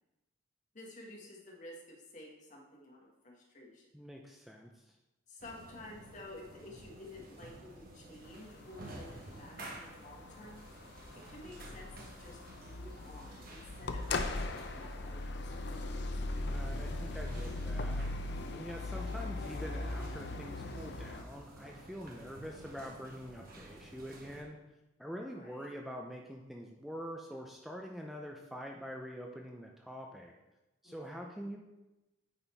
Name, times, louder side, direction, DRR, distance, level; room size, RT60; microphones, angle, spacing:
voice 1, 0.7-3.9 5.3-10.6 11.1-15.8 25.3-25.8 30.8-31.3, left 1 dB, 40° left, -2 dB, 1.6 m, -52 dB
voice 2, 3.9-5.0 16.5-18.1 18.5-24.6 25.0-30.3 30.8-31.6, equal, ahead, 0 dB, 0.5 m, -45 dB
Quiet library ambience, 5.4-24.4, right 1 dB, 45° right, 1.1 m, -52 dB
sound 1, 8.3-21.2, left 2 dB, 55° left, 0.6 m, -39 dB
8.9 x 4.3 x 4.6 m, 0.99 s
head